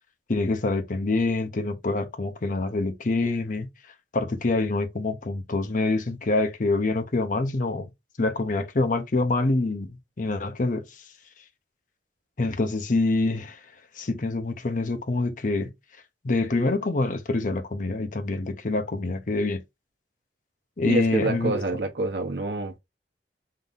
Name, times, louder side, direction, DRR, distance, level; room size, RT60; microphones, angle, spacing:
voice 1, 0.3-3.7 4.1-7.9 8.2-10.8 12.4-13.6 14.0-15.7 16.2-19.6 20.8-21.6, left 2 dB, 45° left, 0.7 m, -26 dB
voice 2, 20.9-22.8, right 2 dB, 65° right, 0.9 m, -27 dB
3.8 x 2.6 x 3.6 m
head